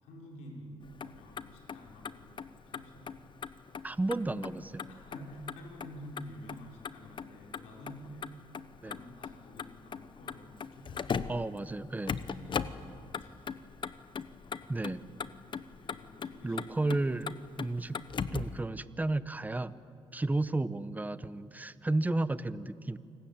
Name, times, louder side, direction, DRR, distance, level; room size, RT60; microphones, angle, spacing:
voice 1, 0.0-3.5 4.9-8.4 8.8-11.5 12.2-14.0 15.2-15.4 15.8-16.7 20.2-20.4, equal, 90° left, -1 dB, 5.0 m, -50 dB
Motor vehicle (road), 0.8-18.6, left 6 dB, 45° left, 1.0 m, -40 dB
voice 2, 3.8-4.9 8.8-9.0 11.3-12.2 14.7-15.0 16.4-18.0 18.3-19.8 20.1-23.0, right 2 dB, 15° right, 14 dB, 1.0 m, -32 dB
28.5 x 19.5 x 9.0 m, 2.3 s
supercardioid pair, 70°, 11 cm